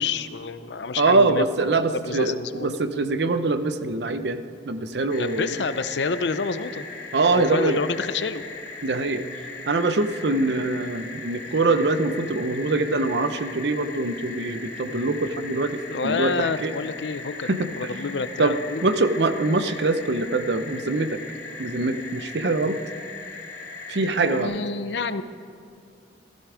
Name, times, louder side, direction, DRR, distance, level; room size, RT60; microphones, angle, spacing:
voice 1, 0.0-1.4 1.9-2.7 5.2-6.8 7.3-8.4 15.9-18.9 24.2-25.2, left 4 dB, 80° left, 12 dB, 0.6 m, -28 dB
voice 2, 1.0-5.5 7.1-7.8 8.8-9.2 9.7-16.7 17.4-17.9 18.4-21.2 21.6-22.8 23.9-24.6, right 3 dB, 75° right, 11 dB, 0.7 m, -24 dB
sound 1, 5.1-24.4, left 4 dB, 65° left, 2.5 m, -39 dB
15.5 x 15.0 x 5.0 m, 2.3 s
head